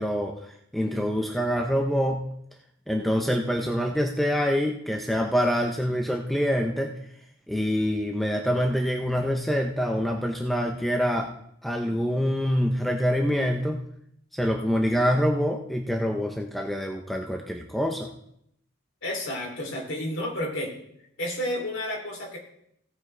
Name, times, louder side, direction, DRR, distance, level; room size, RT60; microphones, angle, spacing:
voice 1, 0.0-2.3 2.9-6.9 7.5-11.3 11.6-13.8 14.3-18.1, equal, ahead, 2 dB, 0.6 m, -25 dB
voice 2, 19.0-20.7 21.2-22.4, left 1 dB, 60° left, 0 dB, 3.1 m, -31 dB
16.0 x 9.1 x 3.3 m, 0.74 s
head